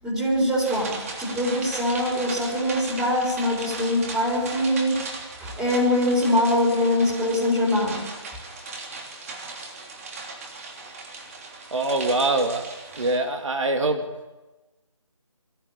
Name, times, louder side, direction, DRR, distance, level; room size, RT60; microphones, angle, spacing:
voice 1, 0.0-5.0 5.4-8.0, left 1 dB, 5° right, -5 dB, 4.2 m, -23 dB
sound 1, 0.6-13.2, right 3 dB, 25° right, 3.2 m, -37 dB
voice 2, 11.7-12.7 13.0-14.0, right 2 dB, 65° right, 5 dB, 2.6 m, -23 dB
24.5 x 15.5 x 8.8 m, 1.1 s
figure-of-eight pair, 165°, 17 cm